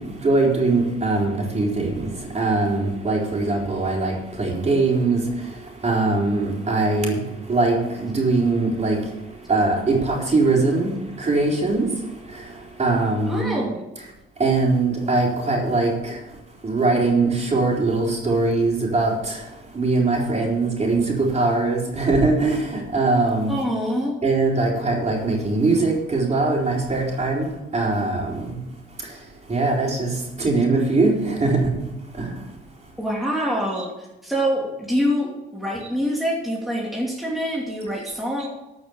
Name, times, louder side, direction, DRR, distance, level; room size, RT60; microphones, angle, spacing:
voice 1, 0.2-5.2 5.8-7.2 7.5-9.0 9.5-10.9 11.2-11.9 12.8-13.5 14.4-16.2 16.6-19.4 19.7-23.5 24.2-27.5 27.7-28.6 29.5-31.7 32.2-32.3 38.4-38.5, right 3 dB, 35° right, -1 dB, 4.3 m, -21 dB
voice 2, 13.3-13.8 23.5-24.2 33.0-33.9 34.2-38.5, equal, ahead, -3 dB, 2.7 m, -25 dB
13.0 x 6.4 x 7.1 m, 0.99 s
cardioid pair, 90°, 20 cm